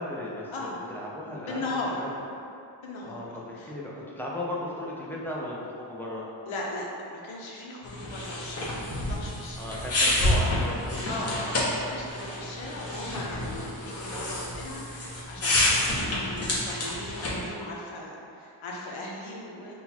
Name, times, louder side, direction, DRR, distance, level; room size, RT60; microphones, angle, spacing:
voice 1, 0.0-1.6 2.0-2.1 3.0-6.2 9.6-11.1 11.5-11.6, left 1 dB, 5° left, -5 dB, 0.3 m, -36 dB
voice 2, 1.5-2.0 2.8-3.7 6.5-9.8 11.1-19.8, left 2 dB, 90° left, -2 dB, 0.8 m, -38 dB
sound 1, 7.8-17.4, left 1 dB, 30° left, 0.9 m, -29 dB
3.8 x 2.3 x 4.2 m, 2.7 s
wide cardioid pair, 155°, 47 cm